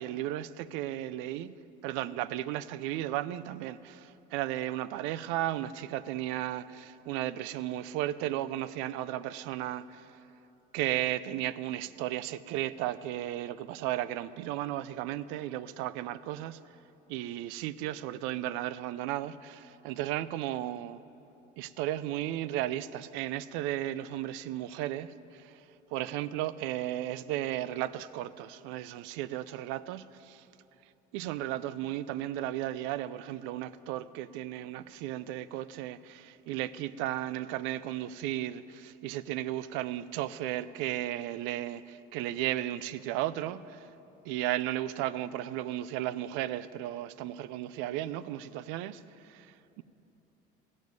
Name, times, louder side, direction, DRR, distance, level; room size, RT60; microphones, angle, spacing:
voice 1, 0.0-1.5 1.8-10.2 10.7-16.6 17.1-21.0 21.6-25.6 25.9-30.4 31.1-43.9 44.2-49.8, right 13 dB, 80° right, 17 dB, 0.4 m, -35 dB
14.0 x 5.1 x 9.3 m, 2.9 s
cardioid pair, 170°, 20 cm